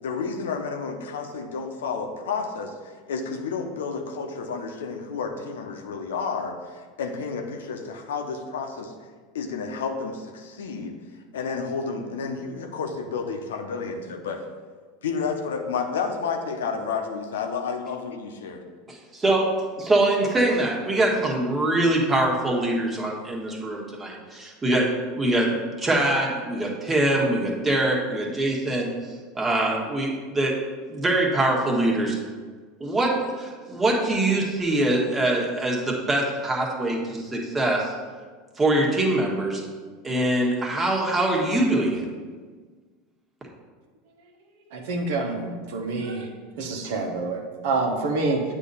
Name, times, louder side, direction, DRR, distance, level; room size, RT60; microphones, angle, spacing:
voice 1, 0.0-8.9 9.3-11.0 11.3-14.4 15.0-18.6, left 5 dB, 80° left, 4 dB, 0.7 m, -31 dB
voice 2, 18.9-25.5 25.8-30.6 30.9-32.2 32.8-37.9 38.6-39.6 40.0-42.0, right 1 dB, 20° right, -2 dB, 1.5 m, -23 dB
voice 3, 44.7-46.3 46.6-48.4, right 3 dB, 65° right, 2 dB, 1.0 m, -27 dB
8.2 x 2.8 x 5.4 m, 1.5 s
hypercardioid pair, 90°, 0 cm